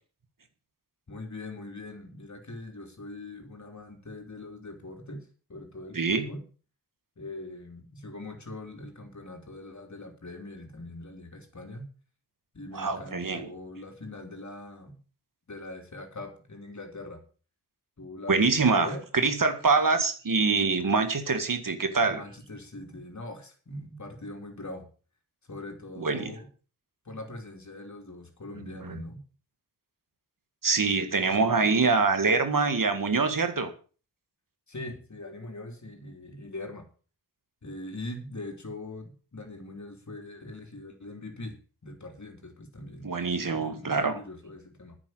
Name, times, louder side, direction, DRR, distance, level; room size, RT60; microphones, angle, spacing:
voice 1, 1.1-6.4 7.2-11.9 12.5-15.0 15.5-17.2 18.0-19.0 22.0-24.9 25.5-26.5 27.1-29.2 34.7-36.9 37.6-43.1 43.5-45.0, left 2 dB, 45° left, 4 dB, 3.6 m, -42 dB
voice 2, 5.9-6.3 12.7-13.4 18.3-22.2 26.0-26.3 28.8-29.0 30.6-33.7 43.0-44.2, right 4 dB, 50° right, 8 dB, 2.0 m, -25 dB
9.8 x 7.3 x 7.8 m, 0.38 s
cardioid pair, 50°, 40 cm